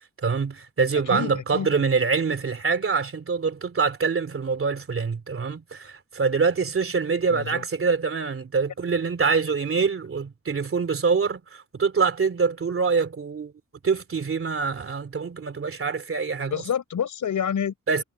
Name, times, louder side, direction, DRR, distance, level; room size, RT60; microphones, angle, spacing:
voice 1, 0.2-13.5 13.8-16.5 17.9-18.0, right 5 dB, 45° right, 3.1 m, -25 dB
voice 2, 1.1-1.8 7.3-7.6 16.5-17.7, left 8 dB, 85° left, 6.0 m, -28 dB
wide cardioid pair, 175°, 30 cm